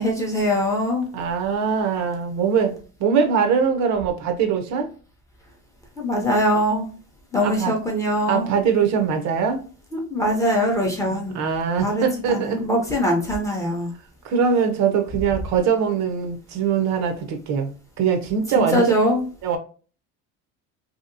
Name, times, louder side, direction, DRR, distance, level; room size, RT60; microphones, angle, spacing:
voice 1, 0.0-1.1 6.0-6.9 7.3-8.5 9.9-11.4 11.8-13.9 18.5-19.2, equal, 10° left, 0.5 m, -22 dB
voice 2, 1.1-4.9 7.4-7.7 8.3-9.6 11.0-12.6 14.2-18.8 19.4-19.6, right 6 dB, 55° right, 0.6 m, -22 dB
2.8 x 2.7 x 2.5 m
cardioid pair, 160°, 34 cm